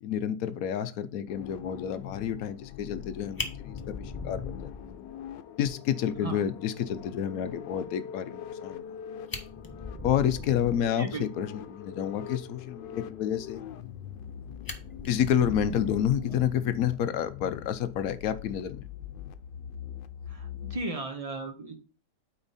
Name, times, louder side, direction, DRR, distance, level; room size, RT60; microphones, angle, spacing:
voice 1, 0.0-4.7 5.6-8.8 10.0-13.6 15.1-18.9, left 9 dB, 70° left, 12 dB, 0.9 m, -29 dB
sound 1, 1.3-20.8, left 9 dB, 90° left, 1.3 m, -43 dB
Fire, 3.0-3.1 3.4-5.3 5.7-5.8 6.1-6.2 6.6-6.7 8.8-8.9 9.2-10.9 13.8-14.3 14.7-16.9 18.2-18.4, left 2 dB, 20° left, 0.5 m, -40 dB
voice 2, 20.3-21.8, right 3 dB, 45° right, 5 dB, 0.4 m, -36 dB
8.8 x 4.5 x 4.0 m, 0.36 s
omnidirectional pair, 1.9 m